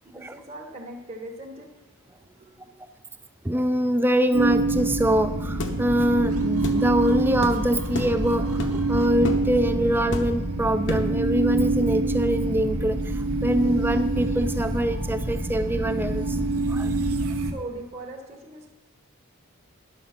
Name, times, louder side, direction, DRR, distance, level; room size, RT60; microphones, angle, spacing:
voice 1, 0.0-1.7 2.1-2.8 17.4-18.7, right 2 dB, 30° right, -1 dB, 1.0 m, -40 dB
voice 2, 3.4-16.4 16.7-16.9, equal, 10° right, 8 dB, 0.4 m, -24 dB
sound 1, 4.3-17.5, right 2 dB, 85° right, 0.9 m, -26 dB
sound 2, 5.6-5.8 6.6-6.8 7.4-7.6 7.9-8.2 8.6-8.9 9.2-9.5 10.1-10.5 10.9-11.2, left 1 dB, 55° left, 0.9 m, -30 dB
10.0 x 6.8 x 5.7 m, 1.1 s
head